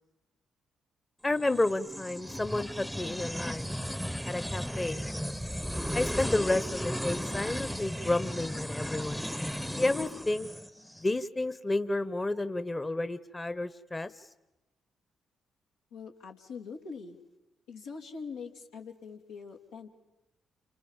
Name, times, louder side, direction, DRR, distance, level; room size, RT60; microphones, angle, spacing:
voice 1, 1.2-3.7 4.2-5.0 5.9-9.2 9.8-10.5 11.0-14.1, left 2 dB, 25° left, 14 dB, 1.1 m, -31 dB
sound 1, 1.3-11.0, equal, 5° left, 0.9 m, -35 dB
voice 2, 15.9-17.2 17.7-20.0, left 5 dB, 90° left, -3 dB, 3.0 m, -43 dB
29.0 x 25.5 x 7.4 m, 0.95 s
hypercardioid pair, 45°, 0 cm